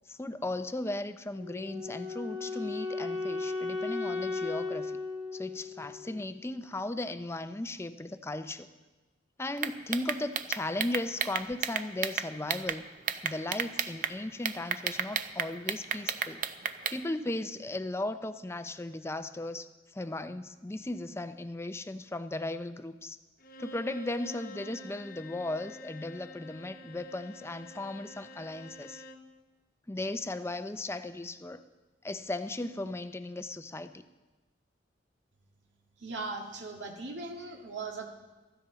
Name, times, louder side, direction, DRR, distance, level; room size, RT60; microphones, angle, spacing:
voice 1, 0.1-5.0 5.3-8.7 9.4-12.8 13.2-16.4 16.9-23.2 23.6-29.0 29.9-31.6 32.0-34.0, left 2 dB, 15° left, 10 dB, 0.5 m, -36 dB
Wind instrument woodwind instrument, 1.3-6.4, left 3 dB, 30° right, 3.0 m, -36 dB
sound 1, 9.6-12.8 13.1-14.1 14.5-17.0, right 8 dB, 45° right, 0.6 m, -32 dB
Bowed string instrument, 23.4-29.3, left 2 dB, 55° left, 1.1 m, -48 dB
voice 2, 36.0-38.1, right 3 dB, 85° right, 1 dB, 1.9 m, -39 dB
15.5 x 14.0 x 4.0 m, 1.2 s
head